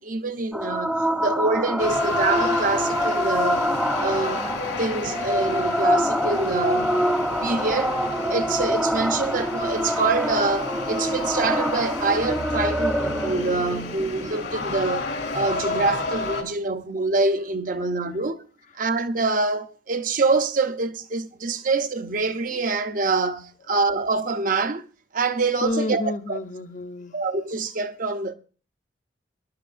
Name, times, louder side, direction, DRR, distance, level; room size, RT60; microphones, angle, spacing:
voice 1, 0.0-3.7 4.0-4.5 4.8-7.0 7.4-8.0 8.3-18.4 18.8-24.9 25.1-26.0 26.3-26.4 27.1-28.3, right 3 dB, 45° right, 0.7 m, -25 dB
sound 1, 0.5-15.5, equal, ahead, 0.5 m, -26 dB
sound 2, 1.8-16.4, left 3 dB, 75° left, 2.6 m, -31 dB
voice 2, 25.6-27.2, left 2 dB, 45° left, 0.7 m, -29 dB
22.0 x 11.0 x 2.5 m
head